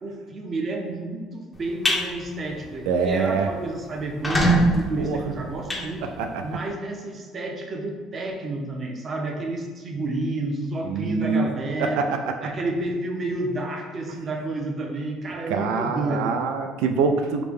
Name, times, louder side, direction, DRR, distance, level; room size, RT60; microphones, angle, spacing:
voice 1, 0.0-6.1 6.4-12.1 12.4-16.3, right 2 dB, 30° right, 2 dB, 0.6 m, -30 dB
sound 1, 1.6-2.0 2.5-2.7 3.1-3.2 3.4-3.5 4.0-6.6, right 1 dB, 10° left, 0.6 m, -23 dB
voice 2, 2.9-3.5 5.0-5.2 6.0-6.4 10.9-11.5 11.8-12.5 15.5-17.4, right 4 dB, 90° right, 6 dB, 0.4 m, -25 dB
4.9 x 2.1 x 3.5 m, 1.5 s
cardioid pair, 140°, 0 cm